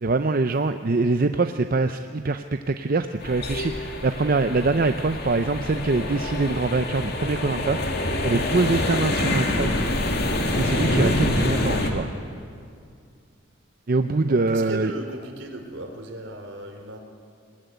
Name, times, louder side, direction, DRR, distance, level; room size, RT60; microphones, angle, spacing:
voice 1, 0.0-9.7 10.5-12.1 13.9-14.9, right 3 dB, 45° right, 8 dB, 0.6 m, -24 dB
sound 1, 3.2-11.9, left 1 dB, 55° left, 2.5 m, -26 dB
voice 2, 14.3-17.0, right 1 dB, 75° right, 4 dB, 3.3 m, -37 dB
20.0 x 20.0 x 9.3 m, 2.3 s
head